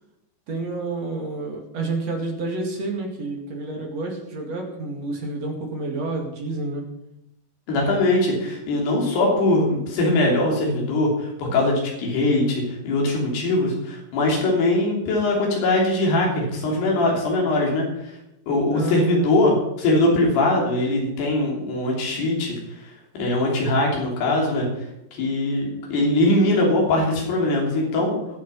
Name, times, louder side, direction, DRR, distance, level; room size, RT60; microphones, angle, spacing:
voice 1, 0.5-6.8 18.7-19.4, right 3 dB, 45° right, 1 dB, 2.8 m, -29 dB
voice 2, 7.7-17.9 18.5-22.6 23.2-24.7 25.1-28.2, left 2 dB, 70° left, -1 dB, 5.3 m, -21 dB
19.5 x 7.3 x 5.7 m, 0.86 s
omnidirectional pair, 4.9 m